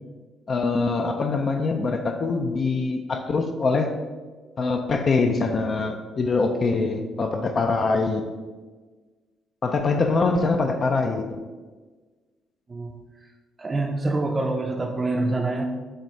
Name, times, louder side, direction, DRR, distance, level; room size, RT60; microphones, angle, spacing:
voice 1, 0.5-3.9 4.6-8.2 9.6-11.4, left 3 dB, 40° left, 5 dB, 0.5 m, -23 dB
voice 2, 13.6-15.7, right 2 dB, 20° right, 0 dB, 0.5 m, -26 dB
7.4 x 2.7 x 5.3 m, 1.3 s
cardioid pair, 135°, 0 cm